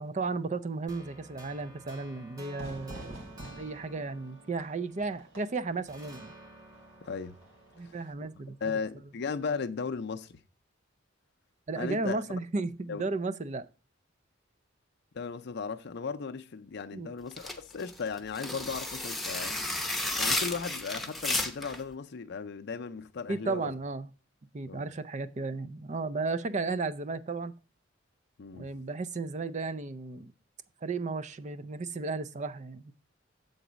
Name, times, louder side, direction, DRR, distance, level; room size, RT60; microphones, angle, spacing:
voice 1, 0.0-3.2 3.6-6.3 7.8-8.8 11.7-13.6 16.9-17.1 23.3-24.1 24.5-27.5 28.5-30.3 30.8-32.9, right 3 dB, 40° right, 0.5 m, -34 dB
sound 1, 0.9-5.4 5.9-9.0, right 1 dB, 20° right, 1.2 m, -52 dB
Fire / Fireworks, 2.6-8.1, right 1 dB, 85° right, 2.5 m, -48 dB
voice 2, 7.0-7.4 7.8-8.0 8.6-10.4 11.7-12.2 12.9-13.0 15.1-19.6 20.1-23.7 24.7-24.8 28.4-28.7, left 5 dB, 55° left, 0.5 m, -36 dB
Printer paper ripping, 17.3-21.8, left 2 dB, ahead, 0.8 m, -32 dB
7.8 x 4.0 x 6.1 m
head